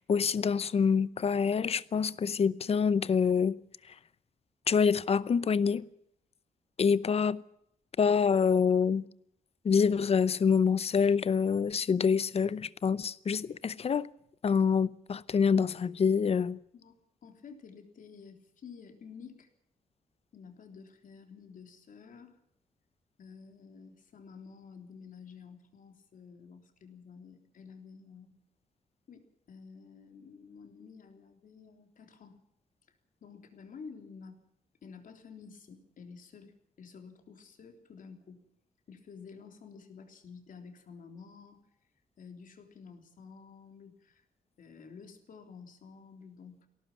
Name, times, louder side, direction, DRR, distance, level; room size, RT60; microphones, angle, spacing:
voice 1, 0.0-3.5 4.7-5.9 6.8-7.4 8.0-9.0 9.6-14.1 14.4-16.6, left 6 dB, 45° left, 0.7 m, -26 dB
voice 2, 16.7-19.5 20.3-22.3 23.2-28.4 29.1-32.4 33.2-34.4 34.8-38.4 38.9-41.6 42.2-44.2 44.6-46.7, left 5 dB, 65° left, 3.4 m, -51 dB
21.0 x 17.5 x 7.3 m
wide cardioid pair, 135°, 15 cm